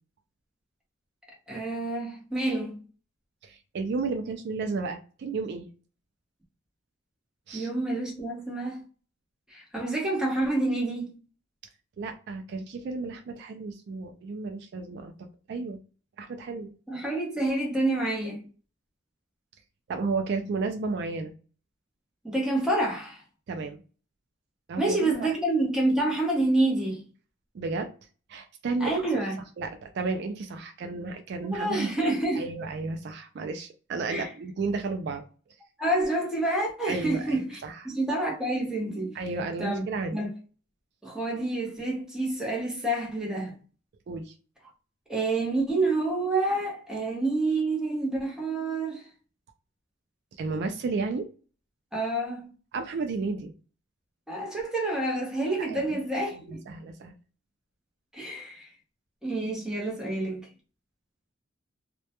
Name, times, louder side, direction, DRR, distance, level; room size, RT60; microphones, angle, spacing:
voice 1, 1.5-2.8 7.5-8.8 9.5-11.1 16.9-18.4 22.2-23.2 24.8-27.0 28.8-29.4 31.5-32.4 34.1-34.3 35.8-37.6 37.8-39.2 39.6-39.8 40.1-40.3 41.0-43.5 45.1-49.1 51.9-52.5 54.3-56.6 58.1-58.7 59.2-60.5, right 2 dB, 5° right, 0.8 m, -28 dB
voice 2, 3.4-5.7 7.5-7.7 12.0-15.8 16.2-16.7 19.9-21.3 23.5-23.8 24.7-25.3 27.5-27.9 28.3-29.1 29.6-32.1 32.4-35.2 36.9-37.9 39.1-40.2 44.1-44.3 50.4-51.3 52.7-53.5 55.7-56.0 56.5-57.1, right 3 dB, 55° right, 0.3 m, -33 dB
2.2 x 2.1 x 2.8 m
head